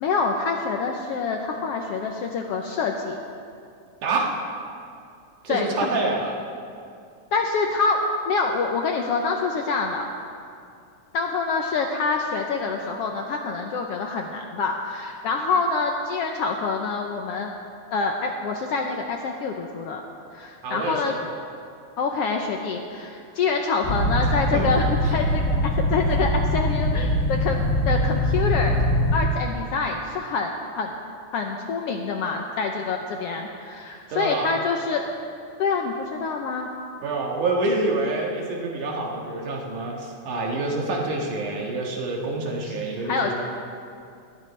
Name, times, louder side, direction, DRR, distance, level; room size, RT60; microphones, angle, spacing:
voice 1, 0.0-3.2 5.5-5.9 7.3-10.1 11.1-17.5 17.9-20.0 20.3-21.1 22.0-28.8 29.1-30.9 31.3-35.0 35.6-36.7 42.6-42.8 43.1-43.3, left 4 dB, 75° left, 2 dB, 1.4 m, -26 dB
voice 2, 4.0-4.3 5.4-6.3 20.6-21.2 24.2-24.6 34.1-34.5 37.0-43.3, right 2 dB, 80° right, -1 dB, 3.2 m, -27 dB
sound 1, 23.8-29.3, left 1 dB, 30° left, 1.4 m, -22 dB
20.0 x 15.0 x 3.3 m, 2.4 s
omnidirectional pair, 3.5 m